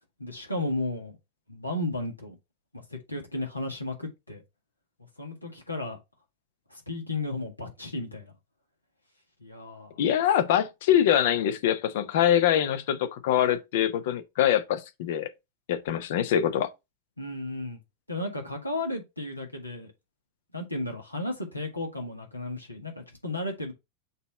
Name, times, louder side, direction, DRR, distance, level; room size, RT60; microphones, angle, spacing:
voice 1, 0.2-1.2 1.5-2.3 2.7-4.4 5.2-6.0 6.7-8.3 9.4-10.0 17.2-17.8 18.1-19.9 20.5-23.7, left 2 dB, 85° left, 1.7 m, -34 dB
voice 2, 10.0-15.3 15.7-16.7, left 10 dB, 55° left, 0.8 m, -24 dB
6.5 x 3.0 x 4.8 m
figure-of-eight pair, 90°, 0 cm